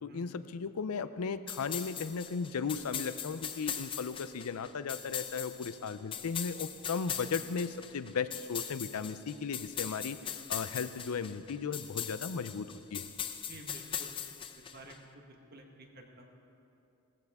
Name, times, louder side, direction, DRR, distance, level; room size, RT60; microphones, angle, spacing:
voice 1, 0.0-13.0, left 5 dB, 85° left, 13 dB, 0.5 m, -36 dB
sound 1, 1.5-15.0, left 8 dB, 25° left, 0.4 m, -40 dB
voice 2, 13.5-14.1 14.6-16.3, right 1 dB, 45° right, 2 dB, 1.4 m, -52 dB
17.5 x 14.5 x 3.6 m, 2.8 s
head